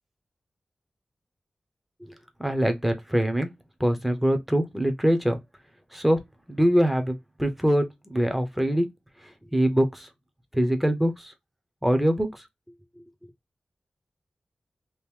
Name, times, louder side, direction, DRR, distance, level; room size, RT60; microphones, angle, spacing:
voice 1, 2.4-3.5 3.8-5.4 5.9-6.2 6.5-8.9 9.5-10.1 10.5-11.3 11.8-12.4, equal, 5° right, 0.8 m, -23 dB
2.9 x 2.7 x 3.4 m
wide cardioid pair, 85°, 3 cm